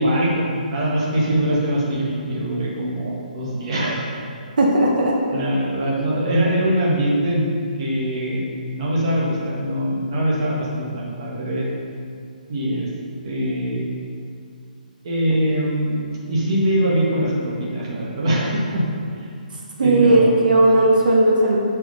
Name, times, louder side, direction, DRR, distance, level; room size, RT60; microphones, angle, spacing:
voice 1, 0.0-4.0 5.3-7.5 7.8-11.7 12.5-12.9 13.2-13.8 15.0-16.0 16.3-18.9 19.2-19.3 19.8-20.3, right 1 dB, 35° right, -4 dB, 1.8 m, -22 dB
voice 2, 4.6-5.1 19.8-21.6, right 1 dB, 70° right, -1 dB, 1.6 m, -16 dB
8.0 x 6.5 x 5.7 m, 2.3 s
hypercardioid pair, 170°, 5 cm